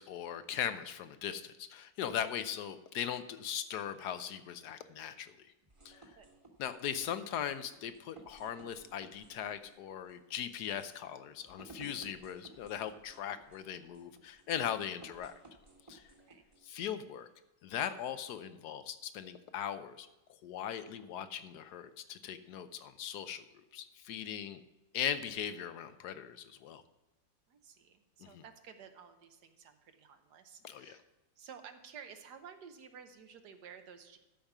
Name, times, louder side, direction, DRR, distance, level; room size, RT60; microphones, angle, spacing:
voice 1, 0.0-5.3 5.8-6.0 6.6-15.3 15.9-16.0 16.6-17.3 17.6-20.1 20.4-23.4 23.7-24.6 24.9-26.8 28.2-28.4 30.6-31.0, left 9 dB, 70° left, 11 dB, 1.2 m, -39 dB
sound 1, 5.6-16.7, right 2 dB, 20° right, 1.2 m, -58 dB
voice 2, 16.1-16.4 27.5-31.0 31.4-34.2, right 7 dB, 70° right, 7 dB, 1.4 m, -53 dB
13.0 x 5.2 x 6.0 m, 1.0 s
omnidirectional pair, 1.9 m